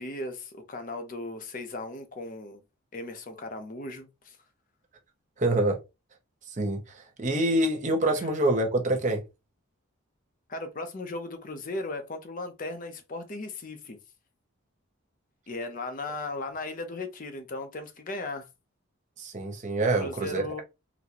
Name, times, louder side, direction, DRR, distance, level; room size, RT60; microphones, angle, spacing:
voice 1, 0.0-2.6 2.9-4.4 8.2-8.3 10.5-14.0 15.5-18.5 20.0-20.6, left 2 dB, 40° left, 0.6 m, -37 dB
voice 2, 5.4-5.8 6.6-6.8 7.2-9.2 19.2-20.6, right 1 dB, 35° right, 0.7 m, -26 dB
3.9 x 2.2 x 2.8 m
head